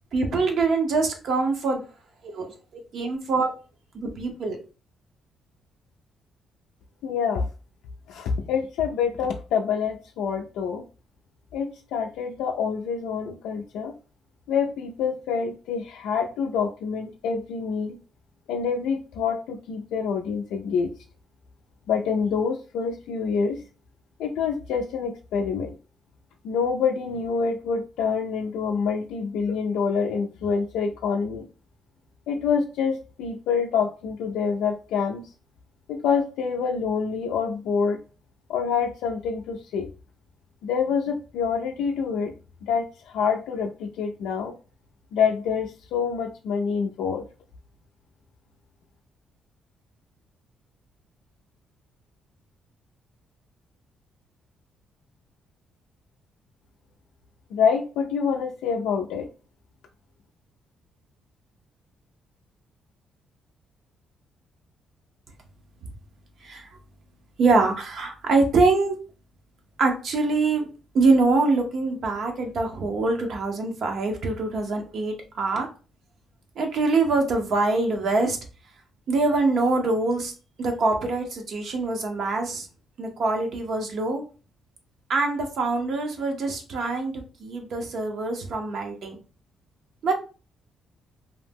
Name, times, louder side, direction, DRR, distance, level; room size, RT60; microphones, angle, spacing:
voice 1, 0.1-1.8 2.2-2.5 2.9-3.5 4.0-4.6 66.4-66.7 67.4-69.0 69.8-70.7 70.9-75.7 76.6-78.4 79.1-80.3 80.6-82.7 83.0-84.2 85.1-89.2 90.0-90.1, right 3 dB, 65° right, 3 dB, 0.7 m, -24 dB
voice 2, 7.0-7.5 8.1-10.8 11.5-13.9 14.5-18.0 18.5-20.9 21.9-23.6 24.2-25.8 26.4-31.5 32.3-35.2 35.9-38.0 38.5-39.9 40.6-42.3 42.6-44.5 45.1-47.2 57.5-59.3, left 6 dB, 90° left, 2 dB, 0.3 m, -26 dB
2.6 x 2.0 x 3.4 m, 0.35 s
cardioid pair, 90°, 0 cm